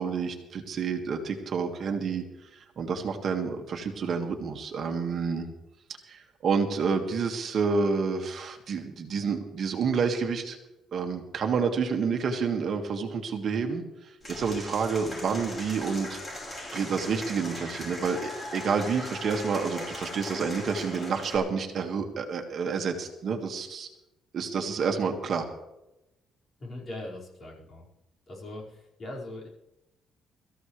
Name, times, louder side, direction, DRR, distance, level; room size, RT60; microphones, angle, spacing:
voice 1, 0.0-2.2 2.5-5.5 6.1-10.6 10.9-16.2 16.7-23.9 24.3-25.5, right 5 dB, 45° right, 4 dB, 1.8 m, -29 dB
Applause / Crowd, 14.2-21.4, left 1 dB, 20° left, 5.6 m, -39 dB
voice 2, 26.6-27.9 28.3-29.5, left 1 dB, 35° left, -4 dB, 5.1 m, -40 dB
24.0 x 14.5 x 3.3 m, 0.93 s
cardioid pair, 150°, 0 cm